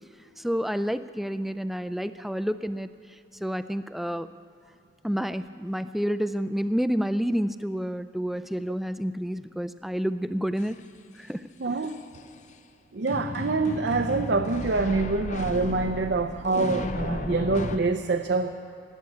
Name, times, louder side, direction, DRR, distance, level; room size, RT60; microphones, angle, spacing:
voice 1, 0.4-2.9 3.4-4.3 5.0-10.8 11.2-11.4, equal, ahead, 12 dB, 0.3 m, -29 dB
sound 1, 10.6-10.7 11.8-12.2 13.1-17.8, left 2 dB, 40° left, 0.6 m, -33 dB
voice 2, 11.6-11.9 12.9-18.5, right 3 dB, 65° right, 6 dB, 0.6 m, -26 dB
19.5 x 8.3 x 8.4 m, 2.6 s
head